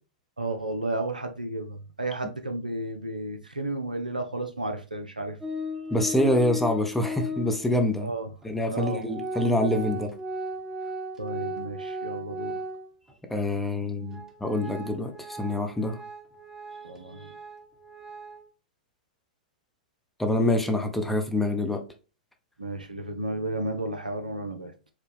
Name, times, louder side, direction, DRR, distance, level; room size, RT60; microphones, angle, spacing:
voice 1, 0.4-5.4 8.0-8.3 8.7-9.0 11.2-12.5 16.8-17.4 22.6-24.7, right 2 dB, 90° right, 0.7 m, -32 dB
Organ, 5.4-7.7 8.4-8.5 8.7-13.1 13.5-13.6 14.1-18.5, equal, 15° right, 1.0 m, -36 dB
voice 2, 5.9-8.1 8.4-10.1 13.3-16.0 20.2-21.8, left 1 dB, 5° left, 0.7 m, -26 dB
4.8 x 2.2 x 3.4 m
figure-of-eight pair, 105°, 4 cm